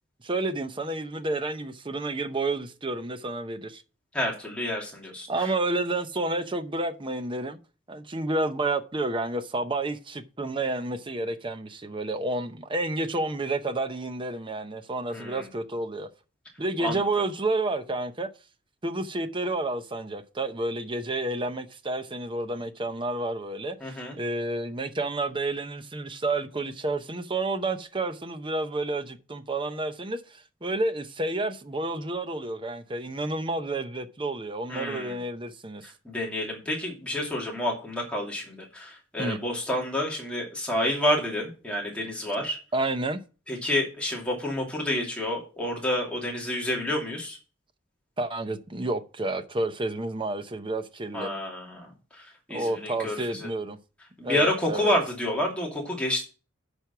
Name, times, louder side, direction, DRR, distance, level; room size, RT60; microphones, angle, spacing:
voice 1, 0.2-3.8 5.3-7.6 7.9-16.1 16.6-18.3 18.8-35.9 39.2-39.4 42.7-43.2 48.2-51.3 52.5-53.8 54.2-54.9, right 2 dB, 25° right, 0.7 m, -30 dB
voice 2, 4.1-5.3 15.1-15.4 16.8-17.0 23.8-24.2 34.7-35.2 36.0-42.6 43.5-47.4 51.1-51.9 52.5-53.5 54.2-56.2, left 1 dB, 5° left, 2.6 m, -29 dB
9.2 x 5.3 x 5.9 m
head